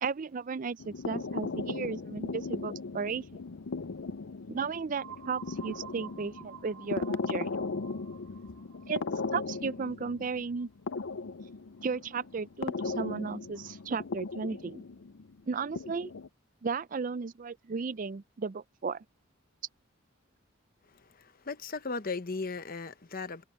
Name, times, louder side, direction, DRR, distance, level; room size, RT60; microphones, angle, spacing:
voice 1, 0.0-3.4 4.5-7.5 8.9-9.0 9.3-10.7 11.8-14.8 15.5-16.1 16.6-19.0, right 5 dB, 40° right, 0.4 m, -35 dB
sound 1, 0.8-16.3, left 4 dB, 60° left, 0.5 m, -37 dB
sound 2, 5.0-10.6, right 11 dB, 75° right, 1.1 m, -51 dB
voice 2, 20.9-23.4, left 4 dB, 40° left, 0.9 m, -37 dB
head